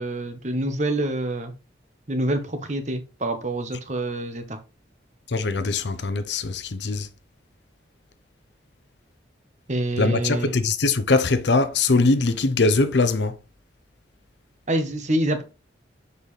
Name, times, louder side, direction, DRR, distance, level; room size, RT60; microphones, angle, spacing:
voice 1, 0.0-1.5 2.1-4.6 9.7-10.5 14.7-15.4, right 1 dB, 40° right, 1.1 m, -26 dB
voice 2, 5.3-7.1 10.0-13.4, left 3 dB, 70° left, 0.7 m, -21 dB
6.6 x 5.4 x 3.2 m
head